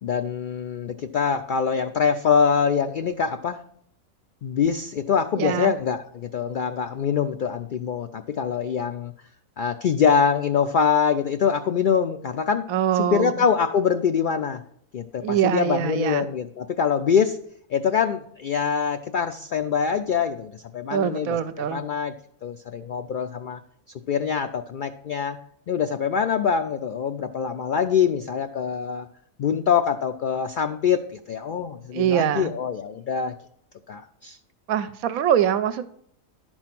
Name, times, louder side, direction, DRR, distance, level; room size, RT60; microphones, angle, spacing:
voice 1, 0.0-3.6 4.4-9.1 9.6-12.7 12.9-14.6 14.9-17.4 17.7-22.1 22.4-23.6 24.1-25.4 25.7-29.1 29.4-33.3 33.9-34.4, left 7 dB, 85° left, 8 dB, 0.4 m, -24 dB
voice 2, 5.4-5.7 12.7-13.3 15.2-16.3 20.9-21.8 31.9-32.5 34.7-35.9, right 9 dB, 90° right, 13 dB, 1.1 m, -23 dB
11.5 x 4.4 x 5.9 m, 0.65 s
omnidirectional pair, 1.4 m